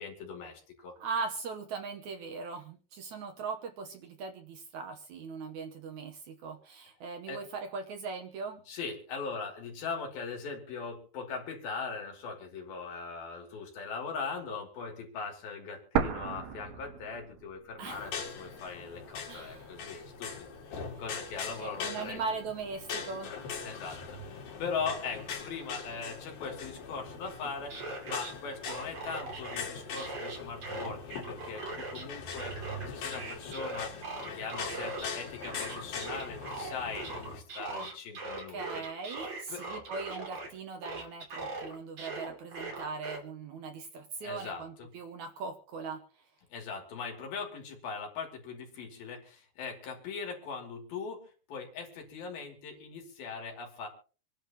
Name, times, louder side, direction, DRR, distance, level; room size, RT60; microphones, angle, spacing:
voice 1, 0.0-0.9 7.3-7.4 8.7-22.2 23.6-24.0 24.3-27.8 28.1-32.6 32.9-38.8 39.5-39.6 44.2-44.9 46.5-53.9, left 5 dB, 75° left, 2 dB, 4.5 m, -40 dB
voice 2, 1.0-8.6 17.8-18.0 19.3-19.7 21.6-23.3 37.7-37.9 38.5-46.0, right 4 dB, 65° right, 5 dB, 2.1 m, -39 dB
sound 1, 16.0-17.9 18.2-18.3 19.0-20.0, right 8 dB, 85° right, 3.1 m, -34 dB
sound 2, 17.9-37.4, left 5 dB, 90° left, 4.3 m, -41 dB
sound 3, 27.5-28.3 28.6-29.6 30.0-32.0 32.3-35.1 35.4-40.5 40.8-43.2, right 3 dB, 45° right, 3.4 m, -40 dB
26.5 x 10.5 x 3.0 m, 0.39 s
omnidirectional pair, 4.3 m